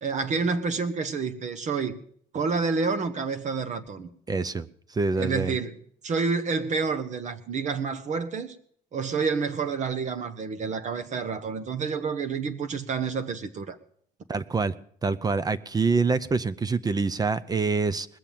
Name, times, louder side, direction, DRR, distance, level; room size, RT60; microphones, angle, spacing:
voice 1, 0.0-2.0 2.3-4.1 5.2-8.5 8.9-13.8, right 5 dB, 45° right, 1.1 m, -29 dB
voice 2, 4.3-4.7 4.9-5.5 14.3-14.7 15.0-18.1, right 4 dB, 20° right, 0.6 m, -25 dB
20.0 x 6.9 x 7.5 m
cardioid pair, 110°, 17 cm